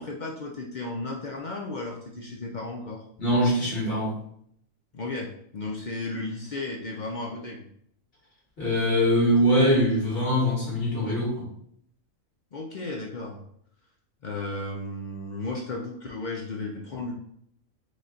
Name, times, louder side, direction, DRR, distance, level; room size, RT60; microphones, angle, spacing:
voice 1, 0.0-3.0 4.9-7.7 12.5-13.4 14.2-17.1, left 2 dB, 60° left, 0 dB, 0.4 m, -34 dB
voice 2, 3.2-4.2 8.6-11.5, equal, 45° left, -5 dB, 1.9 m, -23 dB
5.0 x 2.3 x 3.8 m, 0.69 s
omnidirectional pair, 1.4 m